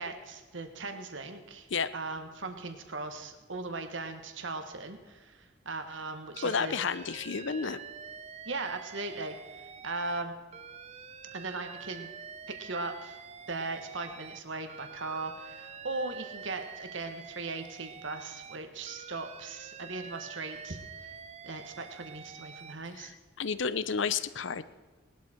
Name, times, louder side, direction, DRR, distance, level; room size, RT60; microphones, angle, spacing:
voice 1, 0.0-1.7 1.9-6.8 8.4-10.3 11.3-12.1 12.5-13.2 13.5-21.1 21.4-23.1, right 3 dB, 70° right, 6 dB, 1.5 m, -38 dB
voice 2, 6.4-7.8 23.0-23.1 23.4-24.6, left 5 dB, 70° left, 15 dB, 0.7 m, -31 dB
Alarm, 6.4-10.2 10.5-14.4 14.7-18.6 18.9-22.7, right 6 dB, 35° right, 0.5 m, -47 dB
19.5 x 12.5 x 4.4 m, 1.3 s
head